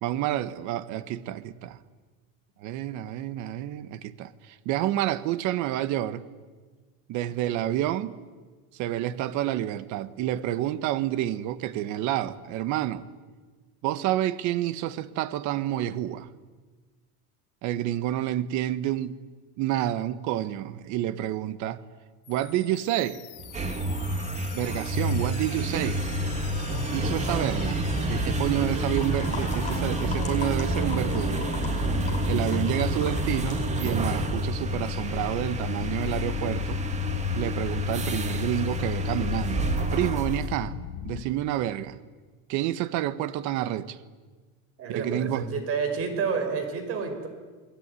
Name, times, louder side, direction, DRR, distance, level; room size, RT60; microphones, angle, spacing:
voice 1, 0.0-1.8 2.6-6.2 7.1-8.2 8.7-13.1 13.8-16.3 17.6-19.2 19.6-21.8 22.3-23.2 24.5-26.0 26.9-27.8 28.1-31.5 32.3-36.8 37.3-40.8 41.0-42.0 42.5-44.0 44.9-45.5, right 13 dB, 60° right, 1.4 m, -29 dB
sound 1, 22.2-41.2, left 10 dB, 65° left, 1.9 m, -38 dB
sound 2, 23.4-40.5, right 1 dB, 20° right, 2.2 m, -29 dB
sound 3, 28.8-33.9, left 6 dB, 20° left, 5.2 m, -40 dB
voice 2, 44.8-47.3, right 5 dB, 45° right, 5.2 m, -29 dB
29.5 x 20.5 x 9.8 m
cardioid pair, 160°, 33 cm